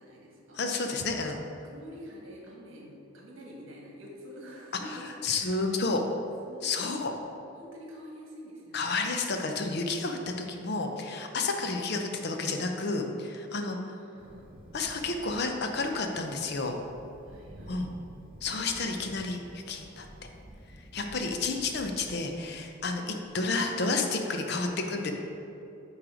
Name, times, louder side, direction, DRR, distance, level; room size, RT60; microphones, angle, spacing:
voice 1, 0.0-0.6 0.9-1.0 1.6-5.7 6.4-7.1 7.5-9.0 13.7-14.5 17.2-17.8, equal, 70° right, -2 dB, 1.5 m, -47 dB
voice 2, 0.6-1.4 5.2-6.0 6.6-7.1 8.7-10.2 10.5-13.9 14.7-16.8 17.7-17.9 18.4-20.1 20.9-25.1, left 3 dB, 50° left, 4 dB, 0.6 m, -31 dB
Thunder, 14.2-23.8, equal, 25° right, 0.6 m, -51 dB
8.7 x 3.1 x 4.9 m, 2.8 s
head